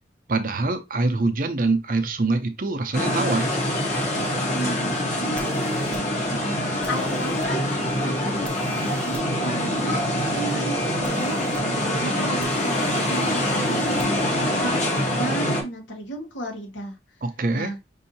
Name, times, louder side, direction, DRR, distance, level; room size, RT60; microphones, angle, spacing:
voice 1, 0.3-3.5 17.2-17.7, right 3 dB, 50° right, 0.6 m, -24 dB
sound 1, 2.9-15.6, left 1 dB, 40° left, 1.2 m, -25 dB
voice 2, 4.5-10.0 10.3-14.1 14.6-17.0 17.5-17.8, right 1 dB, 85° left, 1.4 m, -34 dB
sound 2, 5.4-6.0 6.8-7.5 8.4-9.2 11.0-11.6 12.4-14.1, left 1 dB, 5° left, 0.6 m, -40 dB
5.5 x 2.7 x 2.7 m
head